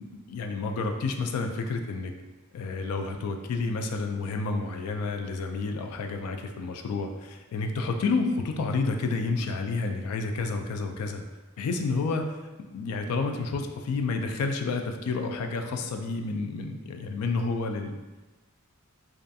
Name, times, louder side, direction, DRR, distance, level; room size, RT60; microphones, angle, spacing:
voice 1, 0.0-2.1 2.5-11.2 11.6-12.4 12.7-18.0, left 3 dB, 90° left, 7 dB, 0.3 m, -30 dB
2.6 x 2.4 x 2.2 m, 1.2 s
head